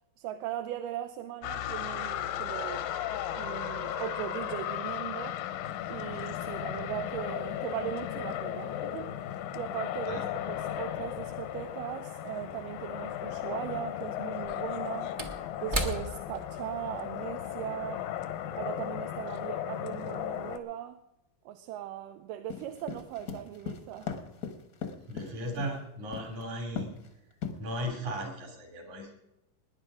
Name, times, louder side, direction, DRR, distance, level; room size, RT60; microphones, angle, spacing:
voice 1, 0.2-2.9 3.4-5.4 5.9-15.1 15.6-18.0 18.5-21.0 21.5-24.1, right 12 dB, 80° right, 2.3 m, -39 dB
sound 1, 1.4-20.6, left 11 dB, 85° left, 2.7 m, -36 dB
Slam / Wood, 12.7-12.8 14.3-19.0 19.3-19.5, equal, 40° right, 0.6 m, -38 dB
sound 2, 22.5-25.7 26.1-26.4 26.8-27.1 27.4-28.0, left 7 dB, 50° left, 1.0 m, -37 dB
voice 2, 25.1-26.9 27.6-29.2, equal, 60° right, 4.4 m, -36 dB
19.0 x 10.0 x 5.0 m
omnidirectional pair, 3.9 m